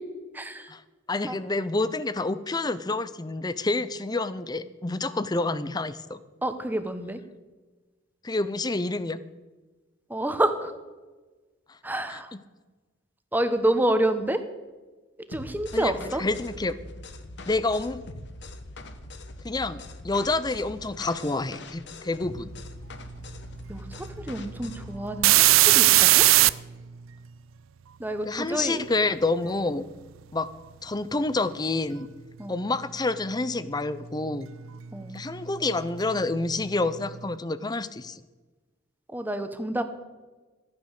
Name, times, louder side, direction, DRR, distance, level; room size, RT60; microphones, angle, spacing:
voice 1, 0.3-0.7 1.3-1.4 6.4-7.2 10.1-10.8 11.8-12.3 13.3-14.4 15.3-16.2 23.7-26.3 28.0-28.9 32.4-32.7 34.9-35.2 39.1-39.8, right 1 dB, 10° right, 9 dB, 1.0 m, -28 dB
voice 2, 1.1-6.2 8.2-9.2 12.1-12.4 15.7-15.9 16.2-16.8 17.5-18.0 19.4-22.5 28.3-29.8 30.3-30.5 30.8-32.1 32.5-34.5 35.1-38.2, left 2 dB, 20° left, 15 dB, 0.6 m, -28 dB
sound 1, 15.3-25.0, left 2 dB, 60° left, 1.1 m, -42 dB
sound 2, 24.1-24.2 24.6-26.5 34.8-34.9 35.3-37.0, right 17 dB, 90° right, 0.4 m, -19 dB
14.0 x 9.6 x 6.5 m, 1.2 s
head